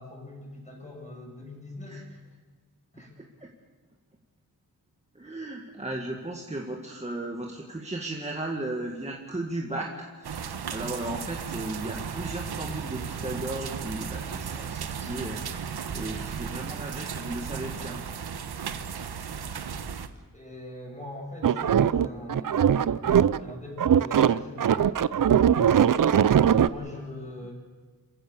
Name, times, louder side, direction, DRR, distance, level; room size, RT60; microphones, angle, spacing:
voice 1, 0.0-2.0 2.9-3.1 20.3-22.7 23.0-25.0 26.6-27.5, left 1 dB, 20° left, -2 dB, 7.5 m, -42 dB
voice 2, 3.2-3.5 5.2-18.0, right 2 dB, 15° right, 0 dB, 1.8 m, -36 dB
sound 1, 10.2-20.1, right 7 dB, 80° right, 1.2 m, -35 dB
sound 2, 21.4-23.5 23.8-26.7, right 9 dB, 55° right, 0.6 m, -21 dB
28.0 x 15.5 x 7.1 m, 1.4 s
wide cardioid pair, 130°, 38 cm